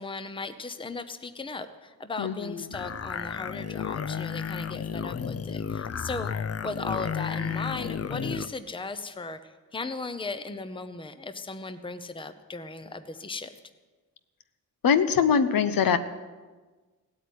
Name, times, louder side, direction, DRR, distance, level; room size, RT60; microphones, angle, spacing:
voice 1, 0.0-6.3 6.6-13.5, left 3 dB, 15° left, 11 dB, 0.8 m, -37 dB
voice 2, 2.2-2.7 14.8-16.0, left 7 dB, 70° left, 11 dB, 1.0 m, -23 dB
sound 1, 2.7-8.5, left 7 dB, 45° left, 0.5 m, -32 dB
17.0 x 8.8 x 9.4 m, 1.3 s
wide cardioid pair, 135°, 36 cm